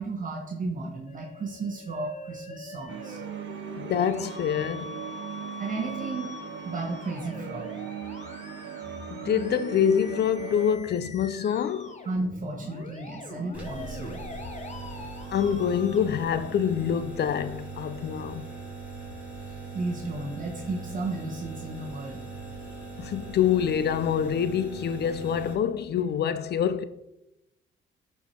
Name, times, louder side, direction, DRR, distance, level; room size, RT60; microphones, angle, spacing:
voice 1, 0.0-3.2 5.6-6.3 6.6-7.7 12.0-14.2 19.5-22.2, right 3 dB, 40° right, 1.3 m, -34 dB
Musical instrument, 1.1-17.0, left 3 dB, 35° left, 1.2 m, -44 dB
sound 1, 2.9-10.7, right 10 dB, 70° right, 1.0 m, -39 dB
voice 2, 3.8-5.0 9.1-12.0 15.3-18.5 23.0-26.8, left 8 dB, 55° left, 0.6 m, -26 dB
sound 2, 13.5-25.5, right 4 dB, 5° right, 3.2 m, -40 dB
11.5 x 4.7 x 4.4 m
cardioid pair, 90°, 20 cm